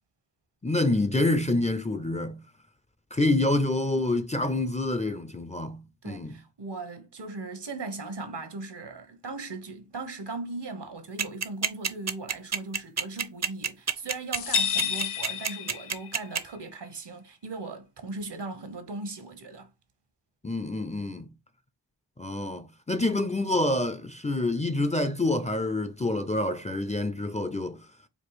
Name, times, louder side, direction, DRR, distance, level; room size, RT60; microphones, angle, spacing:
voice 1, 0.6-2.4 3.1-6.4 20.4-21.3 22.2-27.8, left 2 dB, 15° left, 0.4 m, -27 dB
voice 2, 6.0-19.7, right 3 dB, 75° right, 1.0 m, -38 dB
sound 1, 11.2-16.4, right 6 dB, 40° right, 0.5 m, -27 dB
sound 2, 14.3-16.3, left 7 dB, 80° left, 0.6 m, -30 dB
4.5 x 2.4 x 4.0 m
wide cardioid pair, 65°, 42 cm